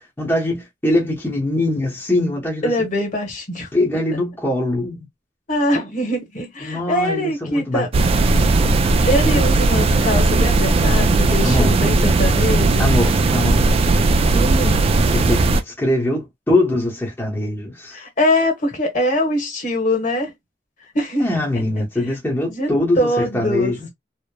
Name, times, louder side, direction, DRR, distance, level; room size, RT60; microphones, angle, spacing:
voice 1, 0.2-2.7 3.7-5.1 6.6-7.9 8.4-8.5 9.3-9.4 11.4-11.7 12.8-13.6 15.1-18.0 21.2-23.9, left 1 dB, 10° left, 0.8 m, -22 dB
voice 2, 2.6-3.7 5.5-7.9 9.1-12.9 14.3-14.8 17.9-20.3 20.9-21.3 22.5-22.7 23.0-23.7, left 1 dB, 45° left, 1.1 m, -22 dB
sound 1, 7.9-15.6, right 3 dB, 35° right, 0.3 m, -17 dB
2.9 x 2.0 x 2.2 m
head